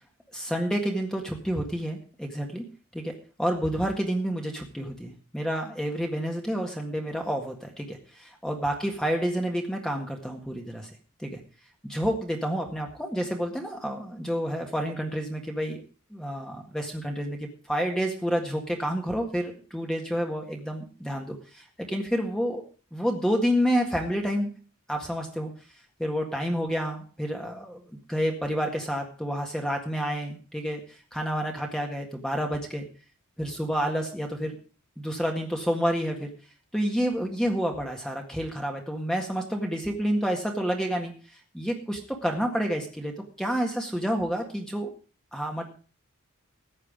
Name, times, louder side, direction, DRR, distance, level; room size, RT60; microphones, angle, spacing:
voice 1, 0.3-2.6 2.9-3.1 3.4-10.9 11.2-11.4 11.8-15.8 16.1-22.6 22.9-24.5 24.9-25.5 26.0-27.8 28.1-32.8 33.4-34.5 35.0-36.3 36.7-41.1 41.5-44.9 45.3-45.7, equal, 5° left, 2 dB, 1.7 m, -29 dB
15.0 x 9.2 x 5.1 m, 0.37 s
head